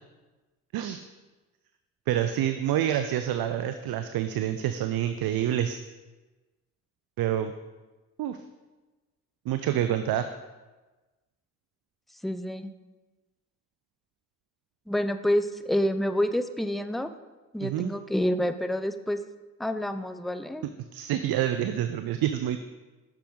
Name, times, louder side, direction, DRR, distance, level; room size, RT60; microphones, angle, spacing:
voice 1, 2.1-5.8 7.2-7.5 8.2-8.4 9.5-10.3 17.6-17.9 20.9-22.7, right 11 dB, 60° right, 9 dB, 0.5 m, -27 dB
voice 2, 12.2-12.7 14.9-17.1 17.5-19.2 19.6-20.7, equal, ahead, 10 dB, 0.3 m, -28 dB
6.8 x 5.9 x 3.6 m, 1.2 s
supercardioid pair, 55°, 40 cm